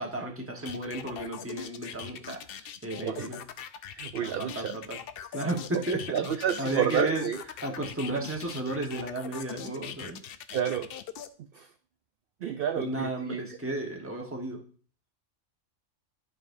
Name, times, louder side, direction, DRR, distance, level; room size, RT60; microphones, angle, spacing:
voice 1, 0.0-3.4 4.2-5.0 5.3-7.3 7.6-10.2 12.4-14.6, right 2 dB, 10° right, 1 dB, 1.1 m, -33 dB
sound 1, 0.7-11.3, left 8 dB, 60° left, 0.6 m, -41 dB
voice 2, 3.9-4.7 5.7-5.8 6.1-7.4 10.5-10.9 11.5-11.7 12.4-13.4, right 9 dB, 60° right, 7 dB, 0.6 m, -30 dB
11.5 x 5.0 x 2.6 m, 0.42 s
omnidirectional pair, 1.3 m